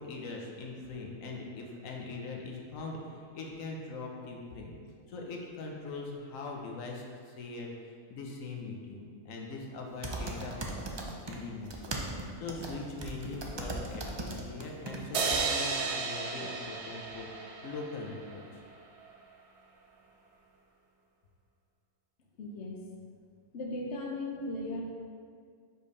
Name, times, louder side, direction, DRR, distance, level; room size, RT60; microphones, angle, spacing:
voice 1, 0.0-4.8 5.1-17.3 17.6-18.4, left 3 dB, 85° left, 0 dB, 1.2 m, -41 dB
sound 1, 10.0-11.4 11.6-15.0 15.3-15.4, right 2 dB, 35° right, 0.4 m, -38 dB
sound 2, 15.1-18.5, right 4 dB, 65° right, 1.0 m, -33 dB
voice 2, 22.4-22.8 23.5-24.9, left 1 dB, 60° left, -1 dB, 1.1 m, -37 dB
5.2 x 4.5 x 5.3 m, 2.1 s
omnidirectional pair, 1.3 m